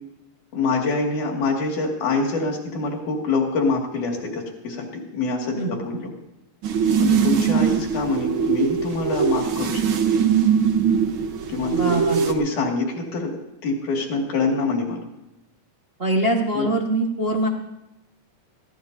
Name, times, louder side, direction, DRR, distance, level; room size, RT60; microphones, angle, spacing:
voice 1, 0.5-6.1 7.0-10.2 11.5-13.3 13.6-15.0 16.5-16.7, left 3 dB, 75° left, 0 dB, 3.7 m, -25 dB
sound 1, 6.6-12.3, right 7 dB, 65° right, 1.3 m, -21 dB
voice 2, 11.7-12.2 16.0-17.5, right 2 dB, 50° right, 0 dB, 0.7 m, -23 dB
22.0 x 16.5 x 2.7 m, 0.90 s
omnidirectional pair, 3.5 m